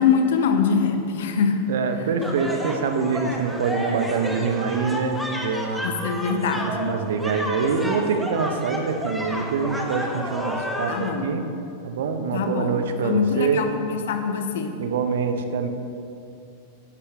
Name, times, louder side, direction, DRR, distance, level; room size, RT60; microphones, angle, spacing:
voice 1, 0.0-1.7 5.8-6.9 10.9-11.3 12.3-14.8, left 6 dB, 60° left, 7 dB, 0.9 m, -23 dB
voice 2, 1.7-5.9 6.5-11.4 11.8-13.7 14.8-15.7, right 5 dB, 60° right, 7 dB, 1.1 m, -25 dB
sound 1, 2.2-11.1, left 1 dB, ahead, 1.5 m, -31 dB
15.5 x 11.5 x 3.4 m, 2.6 s
figure-of-eight pair, 90°, 0 cm